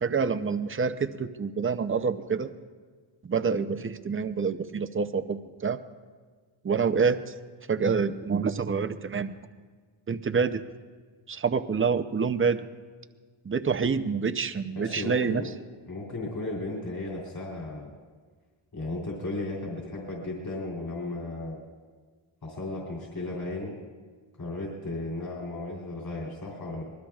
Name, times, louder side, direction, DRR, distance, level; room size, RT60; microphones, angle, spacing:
voice 1, 0.0-2.5 3.2-5.8 6.6-7.3 7.7-9.3 10.1-10.6 11.3-12.6 13.4-15.4, right 5 dB, 25° right, 9 dB, 0.6 m, -27 dB
voice 2, 14.7-15.5 15.9-17.9 18.7-21.6 22.4-23.8 24.4-26.8, left 2 dB, 45° left, -3 dB, 3.3 m, -35 dB
25.0 x 21.0 x 2.4 m, 1.5 s
wide cardioid pair, 115°, 49 cm